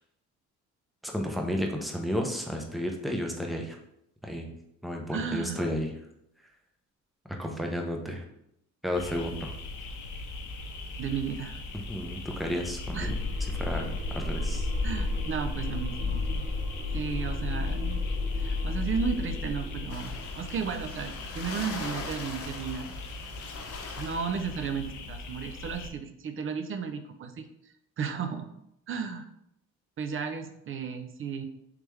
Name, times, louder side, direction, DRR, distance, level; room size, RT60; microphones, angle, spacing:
voice 1, 1.0-3.8 4.2-4.5 4.8-5.9 7.4-8.2 8.8-9.5 11.7-13.2 13.6-14.7, equal, ahead, 2 dB, 0.6 m, -32 dB
voice 2, 5.1-5.6 11.0-11.6 12.9-13.2 14.8-16.5 16.9-18.1 18.4-22.9 24.0-27.5 28.0-28.5 28.9-29.3 30.0-31.5, right 6 dB, 45° right, 8 dB, 0.4 m, -34 dB
sound 1, 8.9-25.9, left 2 dB, 80° left, 0.6 m, -40 dB
sound 2, 12.7-21.6, left 3 dB, 80° right, 0.9 m, -32 dB
sound 3, 19.9-24.6, left 4 dB, 50° left, 0.8 m, -42 dB
3.3 x 3.3 x 3.0 m, 0.78 s
cardioid pair, 90°, 30 cm